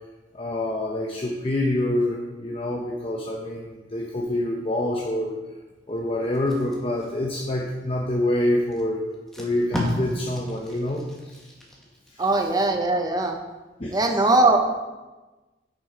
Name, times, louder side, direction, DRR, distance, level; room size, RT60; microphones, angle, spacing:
voice 1, 0.3-5.3 5.9-9.1 9.4-11.4 12.1-12.3 13.8-14.3, left 1 dB, 35° left, -1 dB, 0.8 m, -26 dB
Packing tape duct tape, 6.3-8.0 8.7-8.8 9.1-12.1 12.5-12.8, left 1 dB, ahead, 1.4 m, -33 dB
voice 2, 12.2-13.4 13.9-14.6, right 2 dB, 20° right, 4 dB, 0.9 m, -20 dB
6.9 x 6.4 x 5.0 m, 1.2 s
head